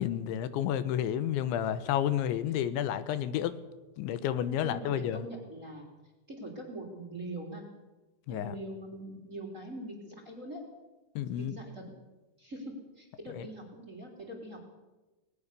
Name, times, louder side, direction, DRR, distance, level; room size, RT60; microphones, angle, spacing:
voice 1, 0.0-3.6 4.0-5.3 8.3-8.5 11.2-11.5 13.3-13.5, left 10 dB, 85° left, 13 dB, 3.4 m, -31 dB
voice 2, 4.6-5.9 6.4-7.6 8.3-10.7 11.4-11.8 12.4-14.6, right 1 dB, 20° right, 1 dB, 3.1 m, -43 dB
19.5 x 19.5 x 6.8 m, 1.1 s
omnidirectional pair, 5.2 m